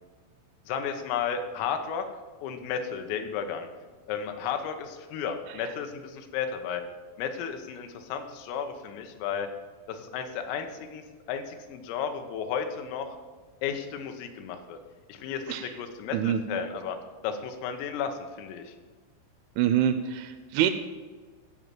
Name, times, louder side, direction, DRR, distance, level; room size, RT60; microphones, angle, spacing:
voice 1, 0.7-2.1 2.4-3.7 4.1-6.8 7.2-9.5 9.9-13.2 13.6-14.8 15.1-17.0 17.2-18.8, left 7 dB, 85° left, 7 dB, 3.7 m, -33 dB
voice 2, 19.6-20.7, right 10 dB, 85° right, 10 dB, 2.8 m, -25 dB
15.0 x 5.4 x 7.5 m, 1.4 s
omnidirectional pair, 5.7 m